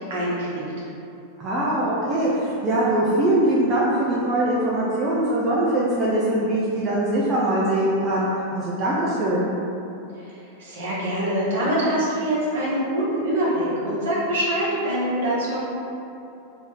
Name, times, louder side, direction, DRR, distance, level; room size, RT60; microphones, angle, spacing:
voice 1, 0.1-0.6 10.2-15.6, right 1 dB, 60° right, -7 dB, 1.1 m, -24 dB
voice 2, 1.4-9.5, right 1 dB, 30° right, -7 dB, 0.5 m, -22 dB
3.0 x 2.8 x 3.7 m, 2.8 s
figure-of-eight pair, 90°, 0 cm